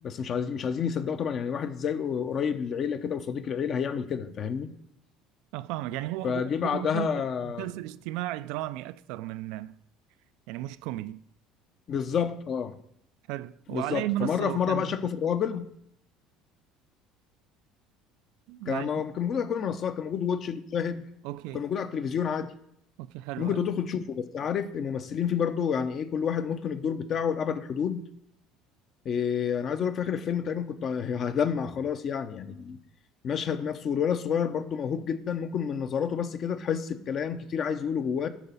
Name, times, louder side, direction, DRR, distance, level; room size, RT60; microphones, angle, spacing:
voice 1, 0.0-4.7 6.2-7.7 11.9-12.8 13.7-15.7 18.7-21.1 21.5-22.5 23.4-28.1 29.0-32.8 33.2-38.3, left 7 dB, 40° left, 0.7 m, -29 dB
voice 2, 5.5-9.8 10.5-11.2 13.3-14.9 18.5-19.0 21.2-21.6 23.0-23.6, right 16 dB, 75° right, 0.3 m, -35 dB
10.5 x 4.0 x 6.9 m
cardioid pair, 125°, 0 cm